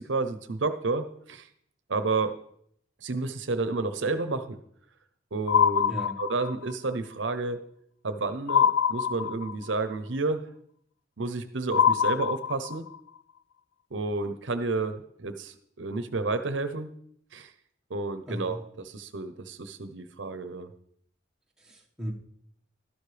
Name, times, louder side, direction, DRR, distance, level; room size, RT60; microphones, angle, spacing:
voice 1, 0.0-1.5 1.9-2.3 3.0-4.6 5.3-5.9 6.2-7.6 8.0-10.5 11.2-12.8 13.9-16.9 17.3-17.5 17.9-20.7, right 3 dB, 70° right, 9 dB, 0.8 m, -31 dB
sound 1, 5.5-6.7 8.5-9.7 11.7-13.0, left 8 dB, 85° left, 0.4 m, -24 dB
voice 2, 18.3-18.6 21.6-22.1, equal, 5° right, -2 dB, 1.5 m, -36 dB
12.5 x 11.5 x 3.3 m, 0.67 s
head